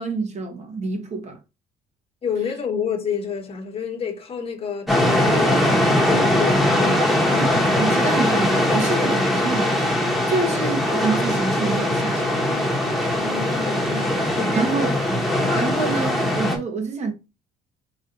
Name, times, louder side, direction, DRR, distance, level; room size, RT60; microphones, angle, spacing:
voice 1, 0.0-1.4 7.4-9.8 10.3-12.5 14.5-15.2 15.5-17.1, right 4 dB, 40° right, 1.2 m, -27 dB
voice 2, 2.2-5.6 6.0-7.6 13.1-14.6, left 6 dB, 35° left, 1.2 m, -29 dB
sound 1, 4.9-16.6, left 1 dB, ahead, 1.2 m, -21 dB
4.2 x 2.6 x 3.9 m
cardioid pair, 110°, 17 cm